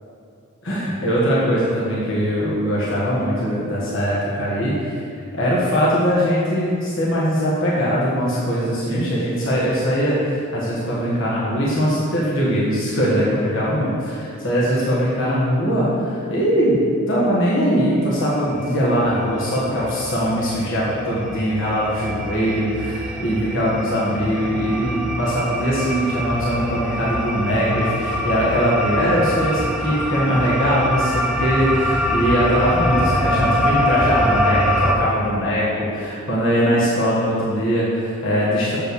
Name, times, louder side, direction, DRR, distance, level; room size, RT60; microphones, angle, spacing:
voice 1, 0.6-4.8 5.3-10.2 10.5-38.8, equal, 60° left, -7 dB, 1.6 m, -21 dB
sound 1, 18.5-18.7 18.9-34.9, equal, 5° right, 0.6 m, -24 dB
7.0 x 5.6 x 6.5 m, 2.5 s
head